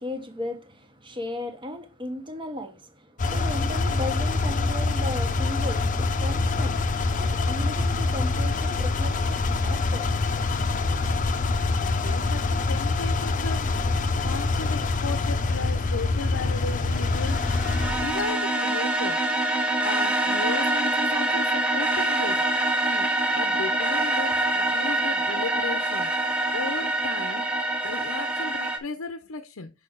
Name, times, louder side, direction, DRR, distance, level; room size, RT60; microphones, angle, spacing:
voice 1, 0.0-6.8 7.1-10.1, left 1 dB, 25° right, 1.4 m, -36 dB
sound 1, 3.2-18.3, left 3 dB, 40° left, 0.7 m, -25 dB
voice 2, 11.8-13.7 14.2-17.4 18.0-19.2 19.8-22.4 22.9-23.1 23.3-26.1 26.5-27.5 27.8-29.7, left 4 dB, 90° left, 0.7 m, -35 dB
sound 2, 16.9-28.8, right 2 dB, 5° right, 1.2 m, -25 dB
6.6 x 5.1 x 3.9 m
head